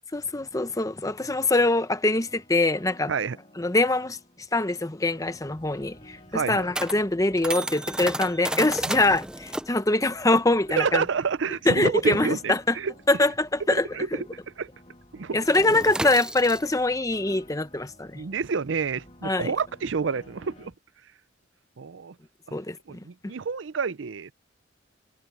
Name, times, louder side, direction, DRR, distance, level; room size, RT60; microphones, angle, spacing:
voice 1, 0.1-3.1 3.6-4.2 4.5-11.0 11.7-12.8 13.1-13.9 14.1-14.2 15.3-18.2 19.2-19.5 22.5-23.0, left 2 dB, 15° left, 0.8 m, -24 dB
Piano, 1.5-20.7, left 1 dB, 35° left, 2.7 m, -54 dB
sound 1, 5.2-14.2 14.4-14.7 15.0-20.7, right 1 dB, 5° right, 0.5 m, -35 dB
voice 2, 6.3-6.7 8.9-9.0 10.7-12.9 13.7-14.1 14.6-14.7 15.1-15.4 18.1-20.7 21.8-22.2 22.9-24.3, right 5 dB, 70° right, 0.5 m, -28 dB
head